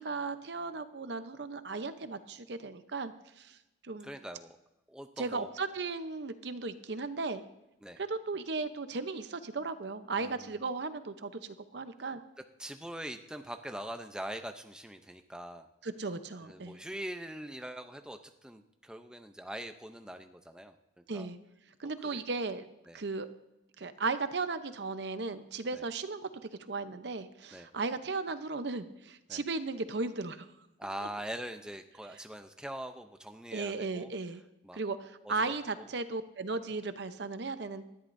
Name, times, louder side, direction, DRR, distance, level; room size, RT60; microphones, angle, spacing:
voice 1, 0.0-3.6 3.8-4.1 5.2-7.4 8.0-12.2 15.8-16.8 21.1-21.4 21.8-22.7 22.9-23.3 23.8-26.3 26.7-30.5 33.5-34.4 34.7-37.8, right 3 dB, 65° right, 10 dB, 0.8 m, -36 dB
voice 2, 4.0-4.6 4.9-5.5 7.8-8.0 10.1-10.5 12.6-15.7 16.4-21.3 21.8-22.2 22.9-23.0 25.7-25.8 27.5-27.7 29.3-29.4 30.8-34.1 34.6-34.8 35.2-35.5 35.8-35.9, right 1 dB, 5° right, 6 dB, 0.6 m, -43 dB
19.0 x 13.5 x 2.6 m, 0.95 s
head